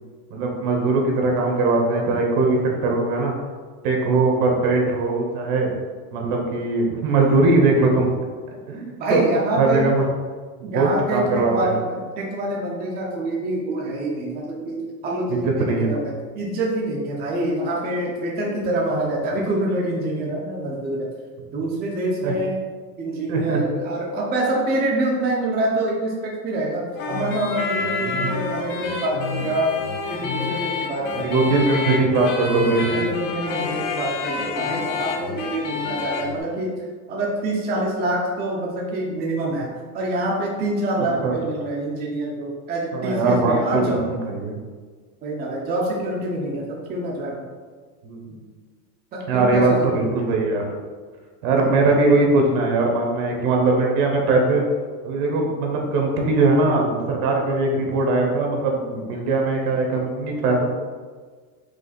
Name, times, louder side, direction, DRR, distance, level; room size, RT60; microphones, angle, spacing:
voice 1, 0.3-3.3 3.8-5.7 6.1-8.1 8.7-9.2 9.6-10.0 10.7-11.7 15.4-16.0 22.2-22.3 23.3-23.6 28.0-28.3 31.2-33.0 41.2-41.6 42.9-44.6 48.0-48.4 49.3-50.7 51.4-54.6 55.0-60.6, right 3 dB, 70° right, 0 dB, 1.4 m, -20 dB
voice 2, 9.0-9.9 10.6-21.1 21.5-22.6 23.0-29.8 30.1-31.4 32.9-36.8 37.1-44.0 45.2-47.6 49.1-50.0, right 1 dB, 20° right, -3 dB, 0.6 m, -26 dB
sound 1, 27.0-36.4, left 4 dB, 45° left, 0.8 m, -28 dB
4.9 x 2.5 x 4.1 m, 1.5 s
supercardioid pair, 135°, 46 cm